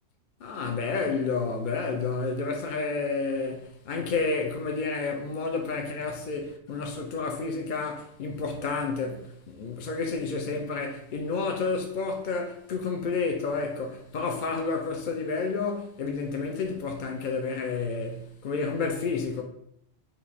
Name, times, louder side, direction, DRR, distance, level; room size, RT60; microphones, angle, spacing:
voice 1, 0.4-19.4, left 4 dB, 55° left, 0.6 m, -30 dB
4.5 x 2.7 x 4.1 m
omnidirectional pair, 1.2 m